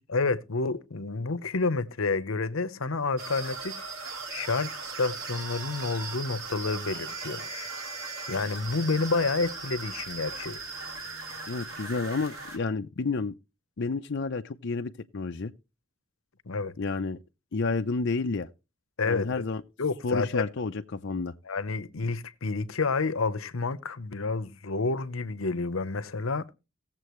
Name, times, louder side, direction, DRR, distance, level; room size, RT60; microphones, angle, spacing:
voice 1, 0.0-7.7 8.3-10.6 16.5-16.7 19.0-19.4 19.8-20.5 21.5-26.5, left 3 dB, 80° left, 0.9 m, -29 dB
sound 1, 3.2-12.6, right 4 dB, 80° right, 3.3 m, -38 dB
voice 2, 11.5-13.4 13.8-15.5 16.8-17.2 17.5-18.5 19.1-19.6 20.0-21.3, left 3 dB, 60° left, 0.6 m, -30 dB
18.5 x 7.5 x 3.1 m
head